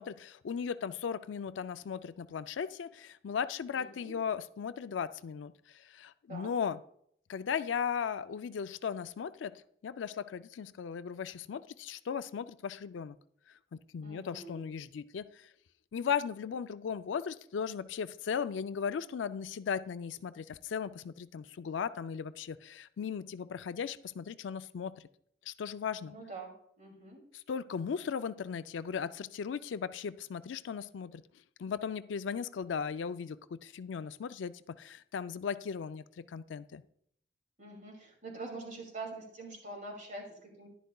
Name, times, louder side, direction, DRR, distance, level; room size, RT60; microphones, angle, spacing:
voice 1, 0.0-6.8 7.3-9.5 9.8-13.2 13.7-15.2 15.9-24.9 25.5-26.1 27.3-31.2 31.6-36.8, left 7 dB, 85° left, 13 dB, 0.4 m, -37 dB
voice 2, 3.7-4.1 6.3-6.5 14.0-14.6 26.0-27.2 37.6-40.7, right 3 dB, 45° right, 0 dB, 2.5 m, -45 dB
11.0 x 10.0 x 2.3 m, 0.68 s
head